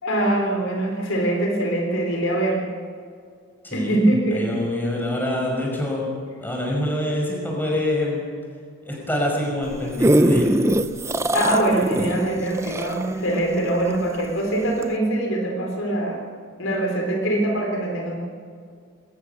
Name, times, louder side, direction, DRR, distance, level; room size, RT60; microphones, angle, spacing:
voice 1, 0.0-2.6 3.7-4.5 11.3-16.2 16.6-18.2, right 1 dB, 65° left, 2 dB, 3.8 m, -23 dB
voice 2, 3.6-4.0 4.3-6.1 6.4-8.2 8.9-10.5, left 1 dB, 10° left, -1 dB, 5.5 m, -25 dB
sound 1, 9.6-14.3 14.8-14.9, right 1 dB, 15° right, 0.6 m, -21 dB
21.5 x 19.0 x 6.9 m, 2.2 s
head